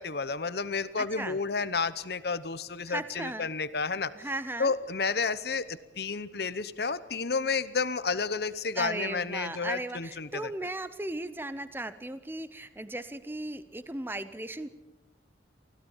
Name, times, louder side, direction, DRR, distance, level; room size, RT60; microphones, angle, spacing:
voice 1, 0.0-4.1 4.6-10.5, left 4 dB, 55° left, 14 dB, 0.8 m, -31 dB
voice 2, 1.0-1.4 2.9-3.5 4.1-4.7 8.7-14.7, right 2 dB, 10° right, 13 dB, 0.6 m, -36 dB
25.0 x 16.0 x 7.2 m, 1.1 s
head